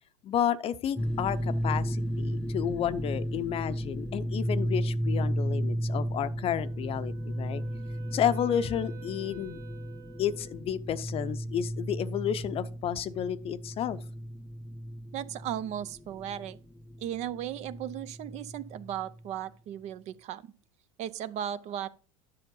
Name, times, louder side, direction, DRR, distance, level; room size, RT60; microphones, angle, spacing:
voice 1, 0.2-7.6 8.1-9.6 10.2-14.0, left 9 dB, 35° left, 0.7 m, -31 dB
sound 1, 1.0-19.2, equal, 5° left, 0.3 m, -34 dB
Wind instrument woodwind instrument, 6.6-10.7, right 12 dB, 20° right, 0.9 m, -52 dB
voice 2, 15.1-16.6 17.0-20.5 21.0-21.9, right 10 dB, 45° right, 0.5 m, -36 dB
10.5 x 6.4 x 3.8 m
hypercardioid pair, 90°, 16 cm